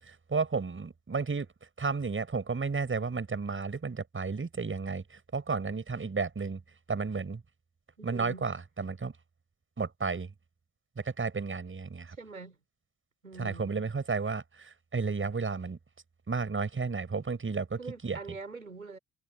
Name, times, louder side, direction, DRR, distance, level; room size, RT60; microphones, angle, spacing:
voice 1, 0.0-1.5 1.8-6.6 6.9-7.4 8.0-9.1 9.8-10.3 11.0-12.2 13.4-15.8 16.3-18.2, right 4 dB, 30° right, 7.0 m, -32 dB
voice 2, 8.0-8.4 12.1-12.6 13.2-13.8 17.8-19.0, right 4 dB, 85° right, 5.9 m, -44 dB
figure-of-eight pair, 45°, 41 cm